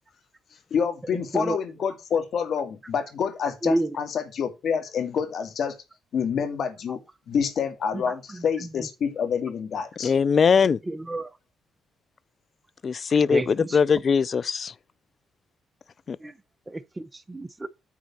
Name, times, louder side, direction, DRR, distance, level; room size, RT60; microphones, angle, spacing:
voice 1, 0.7-5.8 6.1-7.0 7.3-10.1, left 7 dB, 65° left, 2.3 m, -27 dB
voice 2, 10.0-10.8 12.8-14.7 16.1-16.2, left 6 dB, 45° left, 0.4 m, -21 dB
voice 3, 10.9-11.3 13.3-13.5 16.2-16.3 16.7-17.7, right 1 dB, 15° right, 1.0 m, -29 dB
9.6 x 4.1 x 5.9 m
cardioid pair, 90°, 0 cm